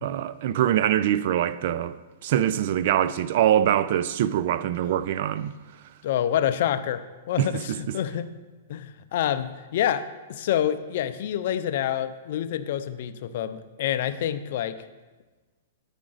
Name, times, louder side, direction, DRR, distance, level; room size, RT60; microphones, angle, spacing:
voice 1, 0.0-2.0 2.2-5.5 7.4-7.5, right 11 dB, 55° right, 0.3 m, -23 dB
voice 2, 6.0-8.3 8.7-10.0 10.3-14.8, left 10 dB, 60° left, 0.4 m, -27 dB
8.6 x 5.0 x 3.9 m
hypercardioid pair, 135°, 0 cm